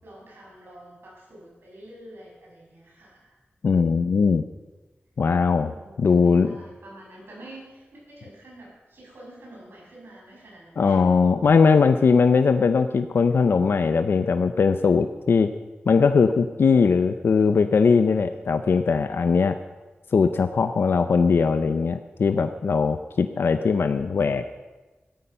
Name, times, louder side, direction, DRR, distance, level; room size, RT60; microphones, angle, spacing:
voice 1, 0.0-3.4 5.5-11.2, right 1 dB, 85° right, -3 dB, 6.7 m, -47 dB
voice 2, 3.6-4.4 5.2-5.7 6.0-6.6 10.8-15.5 15.9-19.6 20.1-24.5, left 5 dB, 90° left, 9 dB, 0.6 m, -20 dB
14.0 x 13.0 x 5.6 m, 1.2 s
wide cardioid pair, 80°, 4 cm